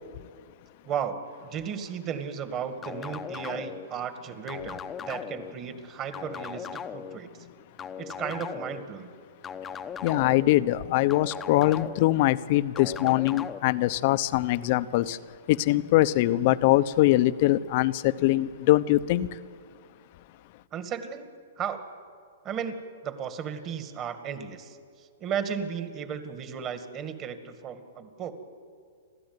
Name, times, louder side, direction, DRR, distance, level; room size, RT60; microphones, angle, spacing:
voice 1, 0.8-7.5 8.0-9.1 20.7-21.3 21.6-21.8 22.4-22.8 23.0-28.3, right 7 dB, 25° right, 2.0 m, -35 dB
sound 1, 2.8-3.9 4.5-5.5 6.1-7.2 7.8-8.8 9.4-10.5 11.1-12.1 12.8-13.6, left 7 dB, 15° left, 0.9 m, -38 dB
voice 2, 10.0-15.2 15.5-19.4, left 16 dB, 45° left, 0.8 m, -23 dB
29.0 x 13.0 x 9.6 m
hypercardioid pair, 145°, 0 cm